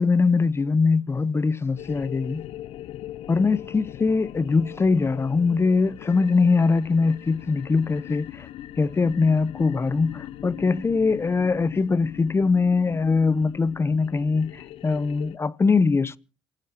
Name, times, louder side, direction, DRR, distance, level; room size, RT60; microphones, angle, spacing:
voice 1, 0.0-2.4 3.3-8.5 8.8-16.2, left 4 dB, 25° left, 0.7 m, -22 dB
sound 1, 1.8-15.4, left 13 dB, 85° left, 0.7 m, -40 dB
28.0 x 14.0 x 2.9 m
cardioid pair, 85°, 9 cm